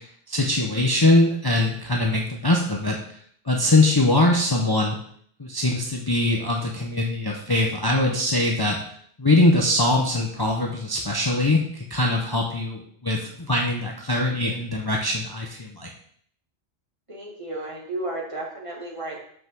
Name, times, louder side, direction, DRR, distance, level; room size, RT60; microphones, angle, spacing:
voice 1, 0.3-3.0 3.5-5.0 5.4-8.8 9.2-15.9, left 2 dB, 25° left, 0 dB, 0.8 m, -22 dB
voice 2, 17.1-19.2, right 2 dB, 30° right, -3 dB, 2.0 m, -33 dB
5.7 x 5.5 x 6.1 m, 0.62 s
omnidirectional pair, 1.1 m